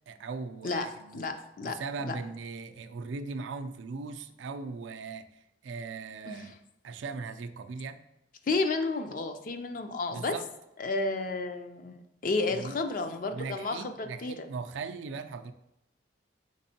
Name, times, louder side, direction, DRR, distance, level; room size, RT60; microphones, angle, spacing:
voice 1, 0.1-1.3 1.6-5.3 5.6-6.5 6.8-8.0 10.1-10.5 12.5-12.8 13.3-15.5, right 4 dB, 80° right, 9 dB, 0.4 m, -39 dB
voice 2, 0.6-1.8 2.0-2.2 6.3-6.5 8.5-10.3 10.8-14.3, left 3 dB, 45° left, 7 dB, 0.4 m, -32 dB
5.2 x 3.5 x 2.7 m, 0.88 s
head